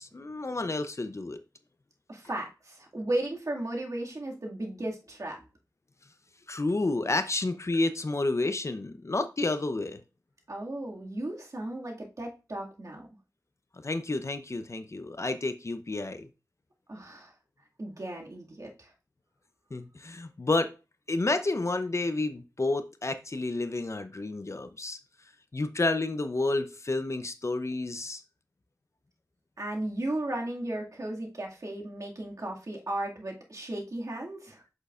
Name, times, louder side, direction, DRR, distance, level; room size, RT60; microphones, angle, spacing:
voice 1, 0.0-1.4 6.5-10.0 13.8-16.3 19.7-20.7 21.1-25.0 25.5-28.2, left 2 dB, 45° left, 0.7 m, -30 dB
voice 2, 2.1-5.4 10.5-13.0 16.9-17.3 17.8-18.9 29.6-34.6, right 1 dB, 50° right, 2.1 m, -35 dB
7.9 x 6.3 x 2.5 m
cardioid pair, 50°, 7 cm